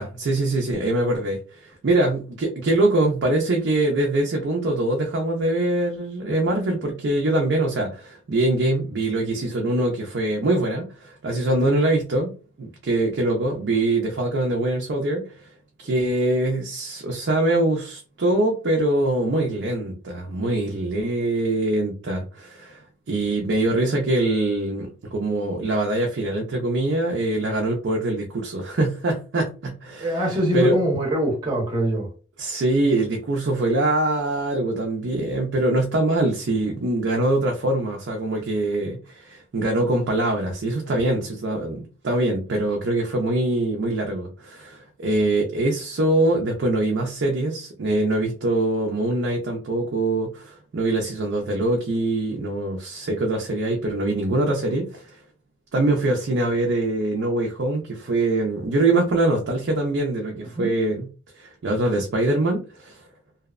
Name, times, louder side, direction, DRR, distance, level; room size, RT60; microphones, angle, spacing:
voice 1, 0.0-12.3 12.6-15.5 15.8-22.8 23.1-30.8 32.4-55.2 55.7-61.1 61.4-63.0, right 2 dB, 60° right, 0.4 m, -23 dB
voice 2, 30.0-32.1 60.5-60.7, right 1 dB, 20° right, 0.7 m, -23 dB
2.6 x 2.0 x 2.4 m
head